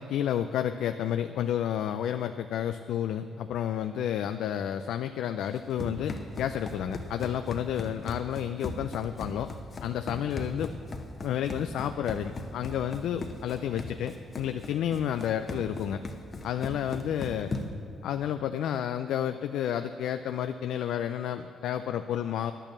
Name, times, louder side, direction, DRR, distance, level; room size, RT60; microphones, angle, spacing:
voice 1, 0.0-9.5 9.8-10.7 11.2-16.0 16.4-17.5 18.0-22.5, left 10 dB, 80° left, 8 dB, 0.3 m, -31 dB
Run, 5.4-17.9, left 2 dB, 35° left, 1.0 m, -38 dB
10.0 x 9.0 x 7.2 m, 2.6 s
cardioid pair, 90°, 0 cm